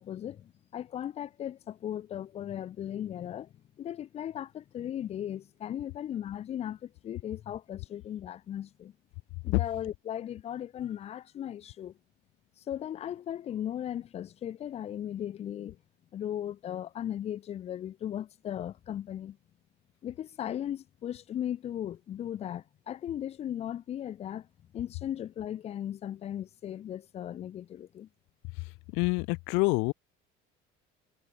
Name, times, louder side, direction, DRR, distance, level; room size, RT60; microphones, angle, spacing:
voice 1, 0.0-8.9 9.4-11.9 12.7-15.8 16.1-19.4 20.0-24.5 24.7-28.1, left 10 dB, 35° left, 1.0 m, -37 dB
voice 2, 28.9-29.9, left 29 dB, 80° left, 0.5 m, -26 dB
cardioid pair, 170°, 19 cm